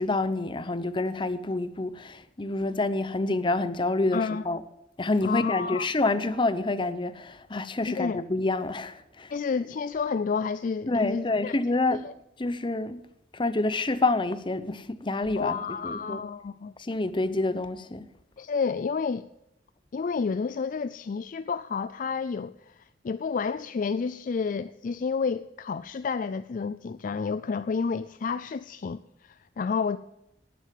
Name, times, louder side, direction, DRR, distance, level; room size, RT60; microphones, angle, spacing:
voice 1, 0.0-4.6 5.0-9.3 10.9-12.0 12.4-13.0 13.3-16.2 16.8-18.1, left 2 dB, 30° left, 0.8 m, -28 dB
voice 2, 4.1-4.4 5.2-5.9 7.8-8.2 9.3-11.6 11.9-12.1 15.4-16.7 18.4-19.3 19.9-30.0, left 5 dB, 50° left, 0.4 m, -30 dB
11.0 x 9.5 x 7.6 m
head